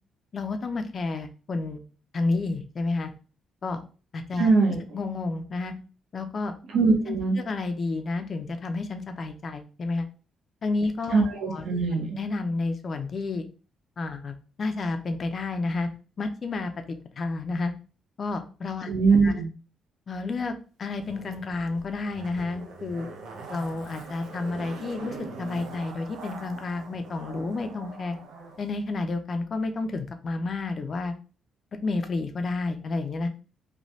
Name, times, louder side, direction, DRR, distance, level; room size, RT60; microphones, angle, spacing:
voice 1, 0.3-1.8 2.1-3.1 3.6-3.8 4.1-4.5 4.9-5.7 6.1-6.5 7.1-10.1 10.6-11.6 12.1-13.4 14.0-15.9 16.2-16.7 17.2-17.7 18.2-18.9 19.2-19.3 20.1-23.1 23.5-28.2 28.6-31.1 31.8-33.3, left 3 dB, 45° left, 7 dB, 0.5 m, -30 dB
voice 2, 4.4-4.8 6.7-7.4 11.1-12.2 18.9-19.5, right 4 dB, 65° right, 0 dB, 0.9 m, -22 dB
Zipper (clothing), 20.9-28.6 28.9-29.0, right 4 dB, 85° right, 0.6 m, -43 dB
3.2 x 2.2 x 2.6 m, 0.35 s
cardioid pair, 90°, 0 cm